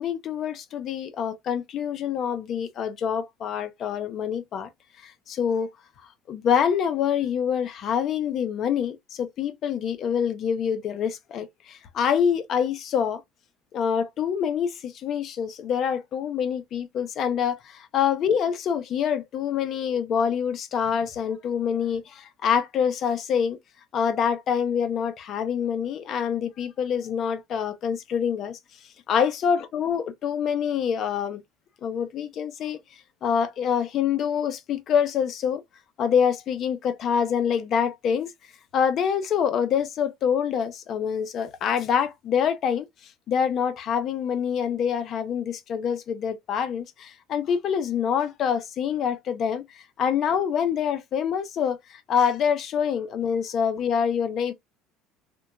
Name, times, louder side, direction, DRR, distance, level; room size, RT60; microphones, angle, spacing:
voice 1, 0.0-4.7 5.0-5.7 6.0-13.2 13.7-23.6 23.9-28.6 29.1-31.4 31.8-32.8 33.2-35.6 36.0-38.3 38.7-54.5, left 7 dB, 45° left, 0.5 m, -26 dB
2.8 x 2.2 x 2.3 m
cardioid pair, 130°, 0 cm